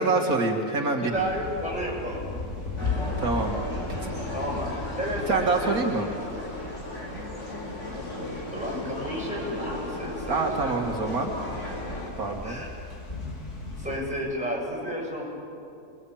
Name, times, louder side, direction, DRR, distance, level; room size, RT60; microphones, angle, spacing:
voice 1, 0.0-1.3 3.2-3.6 4.0-4.3 5.3-6.1 10.3-11.3 12.2-12.6, right 3 dB, 70° right, 1 dB, 2.3 m, -26 dB
voice 2, 1.0-2.2 4.3-5.8 6.1-6.2 8.5-10.8 12.4-12.7 13.8-15.3, equal, 5° right, -4 dB, 7.7 m, -32 dB
sound 1, 1.1-14.0, left 3 dB, 85° left, 4.0 m, -37 dB
sound 2, 2.8-12.1, left 1 dB, 50° left, 4.8 m, -36 dB
28.5 x 22.0 x 8.6 m, 2.6 s
omnidirectional pair, 1.6 m